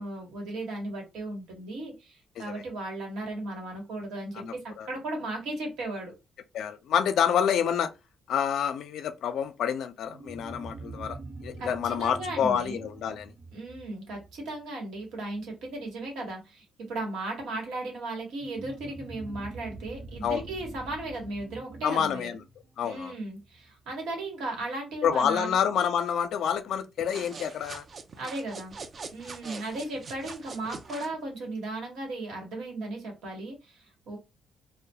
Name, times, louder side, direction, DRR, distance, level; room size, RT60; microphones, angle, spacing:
voice 1, 0.0-6.1 11.6-11.7 12.0-12.8 13.5-22.3 22.8-25.7 28.2-28.8 29.1-34.2, right 2 dB, 85° right, 1.0 m, -36 dB
voice 2, 4.4-4.9 6.5-7.9 8.3-13.3 20.2-20.4 21.8-22.4 22.8-23.1 25.0-27.8, left 8 dB, 75° left, 0.4 m, -28 dB
sound 1, 10.1-15.0 18.4-23.3, right 2 dB, 65° right, 0.9 m, -45 dB
sound 2, 27.0-31.2, right 4 dB, 45° right, 0.3 m, -43 dB
2.3 x 2.1 x 2.7 m
cardioid pair, 90°, 0 cm